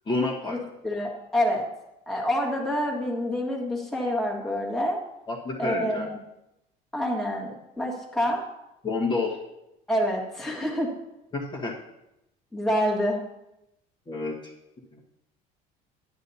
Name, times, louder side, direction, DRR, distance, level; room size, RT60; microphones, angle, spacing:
voice 1, 0.0-0.6 5.3-6.1 8.8-9.4 11.3-11.8 14.1-14.4 14.9-15.0, left 3 dB, 25° left, -3 dB, 1.5 m, -29 dB
voice 2, 0.8-1.6 2.1-5.0 5.6-6.1 6.9-8.4 9.9-10.9 12.5-13.2, equal, ahead, -4 dB, 1.7 m, -27 dB
11.0 x 8.7 x 2.8 m, 0.87 s
cardioid pair, 140°, 17 cm